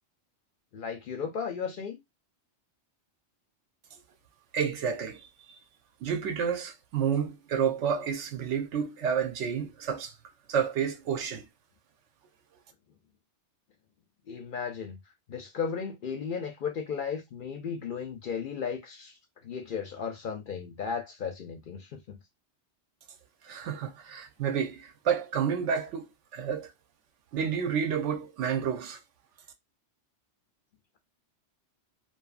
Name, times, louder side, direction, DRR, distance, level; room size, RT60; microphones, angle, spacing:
voice 1, 0.7-2.0 14.3-15.0 15.3-19.2 19.4-22.2, left 6 dB, 60° left, 0.6 m, -35 dB
voice 2, 4.5-5.6 6.0-10.1 10.5-11.5 23.4-26.7 27.3-29.0, right 7 dB, 80° right, 1.0 m, -30 dB
2.6 x 2.4 x 2.4 m
omnidirectional pair, 1.2 m